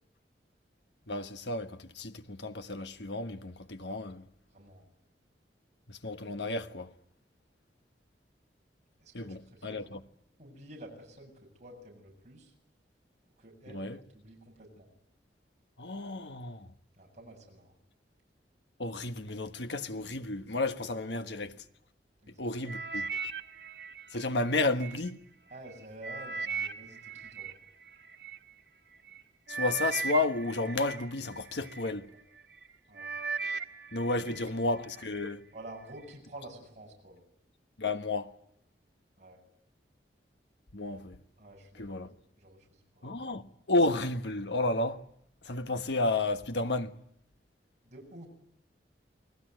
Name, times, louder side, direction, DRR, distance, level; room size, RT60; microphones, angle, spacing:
voice 1, 1.1-4.2 5.9-6.9 9.1-10.0 13.7-14.0 15.8-16.7 18.8-21.6 22.4-23.1 24.1-25.2 29.5-32.1 33.9-35.5 37.8-38.3 40.7-41.2 41.7-42.1 43.0-45.0 45.4-47.0, left 2 dB, 75° left, 1.4 m, -32 dB
voice 2, 4.5-4.9 9.0-9.9 10.4-11.3 11.6-12.5 13.4-14.9 17.0-17.7 22.2-22.5 25.5-27.5 32.9-33.1 34.1-34.6 35.5-37.2 39.2-39.4 41.4-42.1 42.4-43.1 47.9-48.3, right 1 dB, 40° right, 7.7 m, -50 dB
sound 1, 22.7-25.0 25.5-28.4 29.1-29.2 29.5-31.9 32.4-32.7 33.0-34.5 34.8-35.3 35.9-36.0, right 5 dB, 90° right, 1.4 m, -37 dB
28.5 x 19.5 x 9.2 m
head